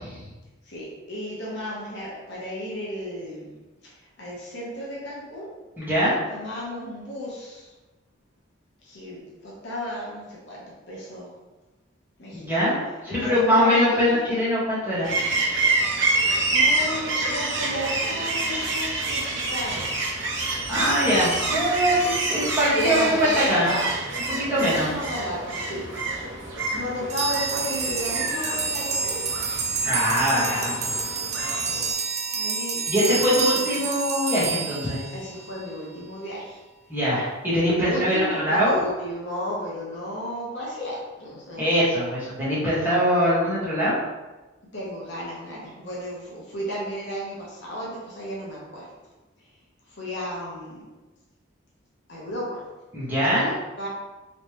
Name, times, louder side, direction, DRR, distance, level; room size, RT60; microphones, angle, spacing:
voice 1, 0.6-3.5 3.8-5.5 6.3-7.7 8.8-11.3 12.2-12.7 13.1-14.3 16.5-20.0 21.1-21.7 22.7-23.9 24.2-25.9 26.7-29.3 30.1-30.8 31.6-31.7 32.3-32.8 33.4-33.8 35.1-36.6 37.8-41.6 44.7-48.9 49.9-50.9 52.1-52.6 53.4-53.9, equal, 60° left, -5 dB, 1.0 m, -33 dB
voice 2, 5.8-6.1 12.3-12.8 13.0-15.1 20.7-23.7 24.3-24.9 29.8-31.0 32.9-35.0 36.9-38.8 41.6-44.0 52.9-53.5, equal, 10° right, -10 dB, 1.4 m, -22 dB
sound 1, 15.0-31.9, right 2 dB, 65° right, 0.8 m, -27 dB
sound 2, 27.1-35.6, right 5 dB, 35° right, 0.4 m, -28 dB
3.2 x 3.2 x 3.0 m, 1.1 s
head